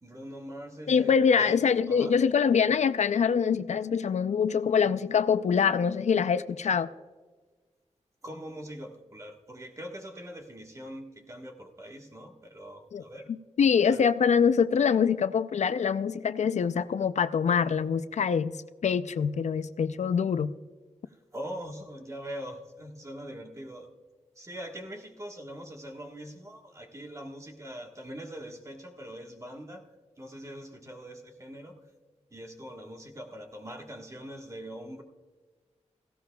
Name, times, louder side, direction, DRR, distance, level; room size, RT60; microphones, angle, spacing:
voice 1, 0.0-1.6 1.9-2.1 8.2-13.3 13.9-14.0 21.0-23.9 24.3-31.8 32.3-35.0, equal, 25° right, 2 dB, 1.4 m, -42 dB
voice 2, 0.9-6.9 12.9-13.0 13.3-18.6 18.8-20.5, left 6 dB, 75° left, 13 dB, 0.4 m, -24 dB
17.5 x 15.5 x 2.3 m, 1.4 s
wide cardioid pair, 140°, 12 cm